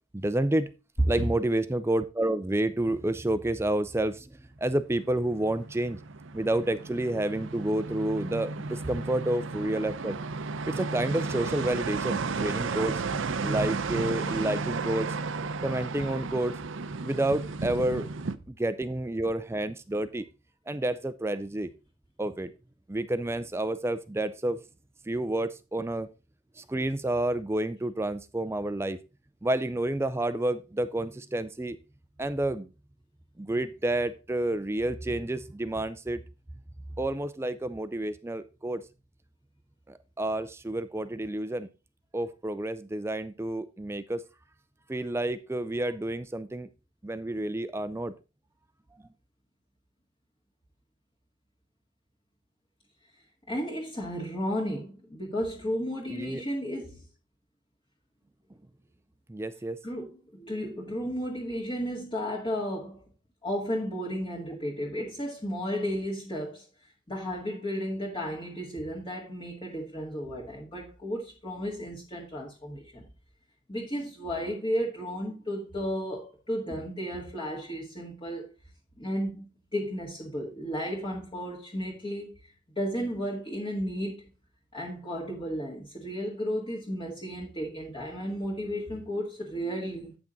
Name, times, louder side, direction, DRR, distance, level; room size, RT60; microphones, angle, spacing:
voice 1, 0.1-0.7 1.1-6.0 6.3-10.2 10.7-13.0 13.4-15.2 15.6-16.6 17.0-18.1 18.5-20.3 20.7-21.7 22.2-22.5 22.9-24.6 25.1-26.1 26.6-29.0 29.4-31.8 32.2-32.7 33.4-36.2 37.0-38.8 39.9-41.7 42.1-44.2 44.9-46.7 47.0-48.1 56.1-56.4 59.3-59.8, right 1 dB, 10° right, 0.4 m, -29 dB
sound 1, 4.9-18.4, right 4 dB, 65° right, 0.6 m, -33 dB
voice 2, 53.5-57.0 59.8-63.0 63.4-66.7 67.1-73.1 73.7-78.5 79.0-79.5 79.7-82.3 82.8-84.3 84.7-90.2, equal, 25° left, 1.8 m, -33 dB
8.8 x 6.0 x 3.9 m
head